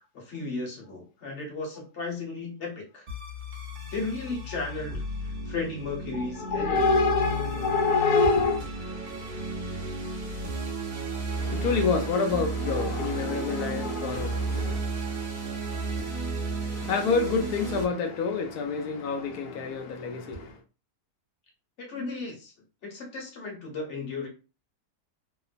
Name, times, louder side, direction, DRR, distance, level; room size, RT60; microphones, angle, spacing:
voice 1, 0.0-3.1 3.9-6.8 21.9-22.5 22.8-24.3, left 3 dB, 50° left, 1.1 m, -35 dB
sound 1, 3.1-17.8, right 2 dB, 45° right, 0.6 m, -33 dB
voice 2, 6.1-8.6 11.3-14.9 16.7-20.6, left 4 dB, 75° left, 1.1 m, -27 dB
2.9 x 2.0 x 2.4 m
omnidirectional pair, 1.7 m